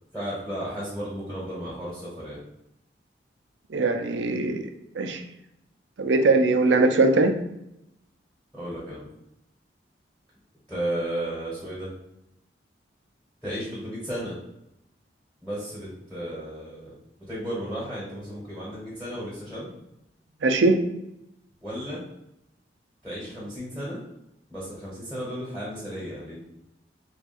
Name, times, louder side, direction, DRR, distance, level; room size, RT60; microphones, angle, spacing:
voice 1, 0.1-2.4 8.5-9.1 10.7-11.9 13.4-14.4 15.4-16.9 17.3-19.7 21.6-22.0 23.0-24.0 24.5-26.4, equal, 5° left, -6 dB, 1.2 m, -34 dB
voice 2, 3.7-4.6 4.9-5.2 6.0-7.3 20.4-20.8, right 3 dB, 85° right, 6 dB, 0.5 m, -21 dB
3.4 x 2.4 x 4.2 m, 0.83 s
head